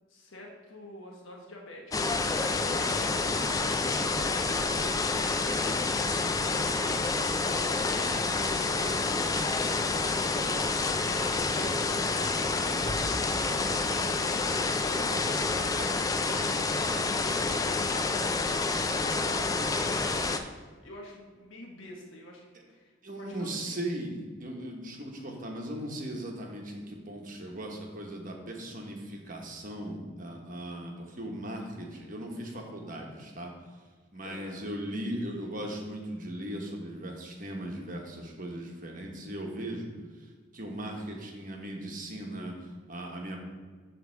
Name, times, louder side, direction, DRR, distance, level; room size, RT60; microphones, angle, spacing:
voice 1, 0.1-5.0 5.4-16.6 16.9-20.5 20.8-22.4 22.7-23.8 34.2-34.7, left 1 dB, 80° left, -1 dB, 1.2 m, -47 dB
sound 1, 1.9-20.4, left 3 dB, 20° left, 0.3 m, -28 dB
voice 2, 23.0-33.5 34.1-39.9 40.2-43.4, right 1 dB, 45° right, 1 dB, 1.2 m, -38 dB
7.8 x 3.3 x 6.4 m, 1.5 s
head